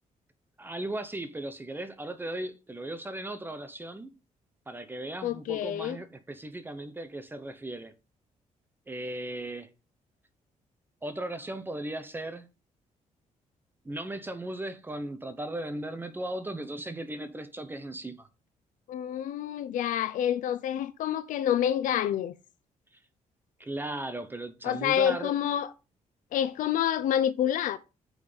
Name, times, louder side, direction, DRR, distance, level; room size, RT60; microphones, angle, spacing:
voice 1, 0.6-4.1 4.7-7.9 8.9-9.7 11.0-12.5 13.8-18.3 23.6-25.3, right 1 dB, 15° right, 0.8 m, -37 dB
voice 2, 5.2-6.0 18.9-22.3 24.6-25.7 26.3-27.8, left 10 dB, 80° left, 0.5 m, -28 dB
6.3 x 5.3 x 5.0 m
cardioid pair, 115°, 13 cm